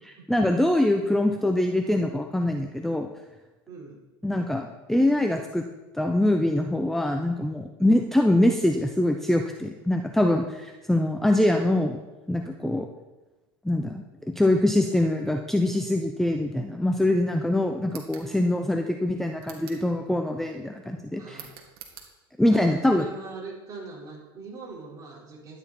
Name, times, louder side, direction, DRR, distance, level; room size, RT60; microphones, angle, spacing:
voice 1, 0.0-3.1 4.2-5.6 5.9-12.0 12.3-12.9 13.6-21.4 22.4-23.1, left 1 dB, ahead, 5 dB, 0.7 m, -24 dB
voice 2, 3.7-4.0 7.8-8.0 12.5-12.8 21.2-21.5 22.5-25.6, right 4 dB, 30° right, -5 dB, 4.8 m, -41 dB
sound 1, 17.8-18.3 19.4-19.9 21.3-22.1, right 9 dB, 70° right, 2.2 m, -46 dB
12.0 x 9.8 x 4.4 m, 1.1 s
supercardioid pair, 115°, 13 cm